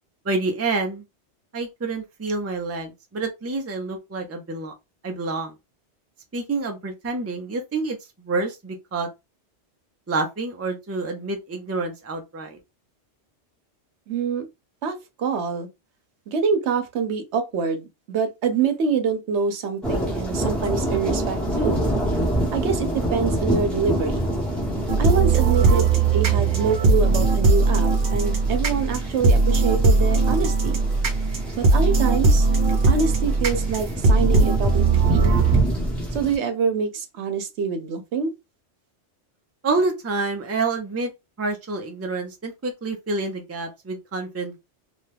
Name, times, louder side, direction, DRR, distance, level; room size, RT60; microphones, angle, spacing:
voice 1, 0.2-1.0 1.5-4.7 5.0-5.5 6.3-8.0 8.2-9.1 10.1-12.6 39.6-41.1 41.4-44.6, right 3 dB, 20° right, 0.4 m, -28 dB
voice 2, 14.1-14.5 14.8-15.7 16.3-21.8 22.5-24.2 25.0-30.8 31.5-32.5 32.9-35.2 36.1-38.3, right 5 dB, 80° right, 1.0 m, -25 dB
sound 1, 19.8-36.4, right 1 dB, ahead, 0.9 m, -27 dB
sound 2, 24.9-35.6, right 3 dB, 55° right, 0.9 m, -19 dB
2.8 x 2.3 x 3.2 m
omnidirectional pair, 1.1 m